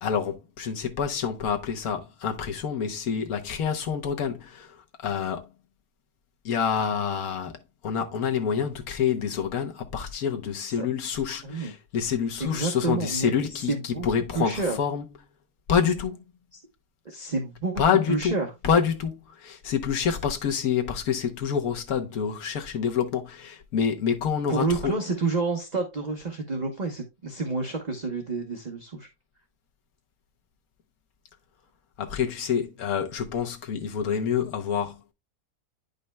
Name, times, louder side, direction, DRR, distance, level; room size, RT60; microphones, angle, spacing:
voice 1, 0.0-5.5 6.4-15.0 15.7-16.2 17.8-18.3 18.6-24.9 32.0-35.1, left 7 dB, 65° left, 1.4 m, -27 dB
voice 2, 12.5-13.3 13.7-14.1 14.3-14.8 17.0-17.8 18.1-18.5 24.5-29.1, right 3 dB, 30° right, 0.9 m, -29 dB
9.9 x 5.3 x 2.2 m
omnidirectional pair, 1.7 m